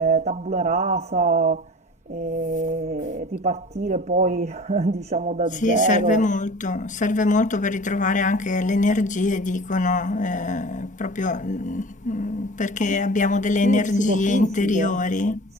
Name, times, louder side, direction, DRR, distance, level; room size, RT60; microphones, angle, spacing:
voice 1, 0.0-1.7 2.1-6.3 12.8-13.0 13.6-15.0, right 3 dB, 30° right, 1.0 m, -24 dB
voice 2, 5.6-15.4, left 2 dB, 35° left, 1.0 m, -23 dB
head